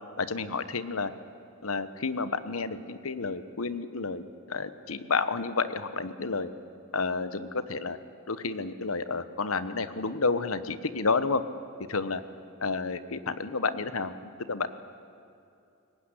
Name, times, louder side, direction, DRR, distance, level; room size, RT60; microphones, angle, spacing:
voice 1, 0.2-1.1 1.6-6.5 6.9-8.0 8.3-11.4 11.9-12.2 12.6-14.7, left 4 dB, 75° left, 13 dB, 1.1 m, -30 dB
22.5 x 19.0 x 10.0 m, 2.6 s
head